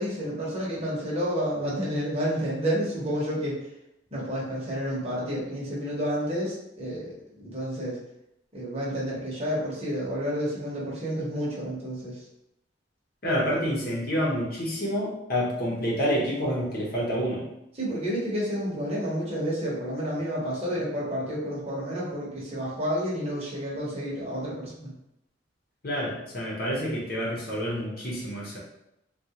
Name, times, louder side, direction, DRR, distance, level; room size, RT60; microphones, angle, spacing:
voice 1, 0.0-3.6 4.1-8.0 8.5-12.2 17.8-24.9, equal, 35° right, -6 dB, 1.0 m, -30 dB
voice 2, 13.2-17.4 25.8-28.6, equal, 55° left, -4 dB, 0.8 m, -28 dB
3.6 x 2.4 x 2.9 m, 0.82 s
head